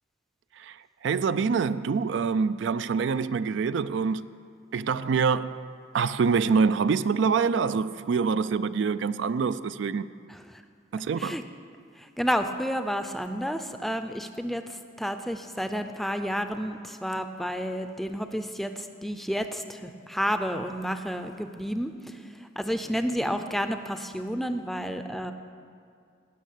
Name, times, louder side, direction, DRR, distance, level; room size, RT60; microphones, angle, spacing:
voice 1, 0.6-4.3 4.7-5.6 5.9-10.1 10.9-11.4, right 5 dB, 65° right, 0.3 m, -25 dB
voice 2, 10.3-10.6 11.2-11.4 12.0-25.3, equal, ahead, 0.5 m, -31 dB
18.0 x 6.3 x 8.4 m
head